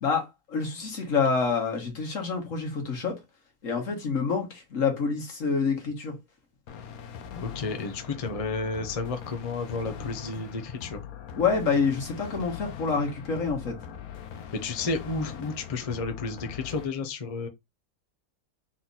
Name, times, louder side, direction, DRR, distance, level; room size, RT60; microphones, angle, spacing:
voice 1, 0.0-3.2 3.6-6.2 11.4-13.8, left 5 dB, 60° left, 1.8 m, -27 dB
sound 1, 6.7-16.9, left 8 dB, 80° left, 1.2 m, -41 dB
voice 2, 7.3-11.0 14.5-17.5, left 3 dB, 35° left, 0.6 m, -32 dB
4.1 x 2.9 x 4.0 m
omnidirectional pair, 1.5 m